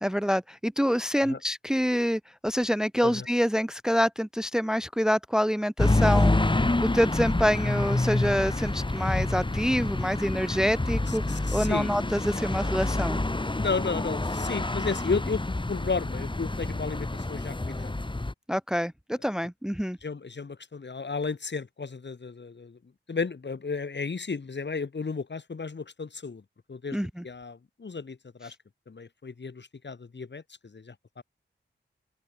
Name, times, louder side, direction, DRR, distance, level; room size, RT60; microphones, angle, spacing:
voice 1, 0.0-6.3 6.8-13.2 18.5-20.0 26.9-27.2, equal, 5° right, 0.9 m, -26 dB
sound 1, 5.8-18.3, left 2 dB, 25° left, 2.4 m, -27 dB
voice 2, 11.1-11.9 13.5-17.9 20.0-22.8 23.1-26.4 26.7-28.6 28.9-31.2, left 4 dB, 65° left, 7.5 m, -33 dB
open air
cardioid pair, 45°, 20 cm